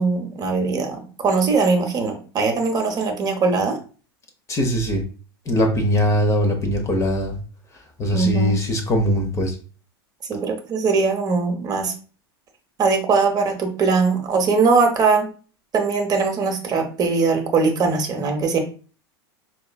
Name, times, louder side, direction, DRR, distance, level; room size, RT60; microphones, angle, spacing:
voice 1, 0.0-3.8 8.1-8.5 10.3-11.9 12.8-15.3 15.7-18.6, right 4 dB, 30° right, 4 dB, 0.8 m, -20 dB
voice 2, 4.5-5.0 5.5-7.4 8.0-9.6, equal, 20° left, 4 dB, 0.7 m, -21 dB
4.7 x 2.4 x 2.2 m, 0.38 s
figure-of-eight pair, 85°, 13 cm